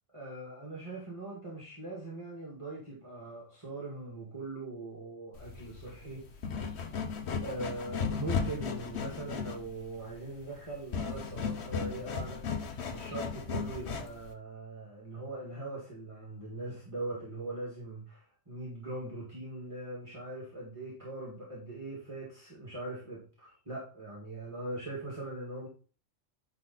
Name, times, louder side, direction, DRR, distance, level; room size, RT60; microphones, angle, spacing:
voice 1, 0.1-6.3 7.4-12.6 12.9-25.7, right 2 dB, 25° right, 2.1 m, -41 dB
sound 1, 5.4-14.3, left 5 dB, 60° left, 1.1 m, -36 dB
9.4 x 3.8 x 4.1 m
omnidirectional pair, 1.3 m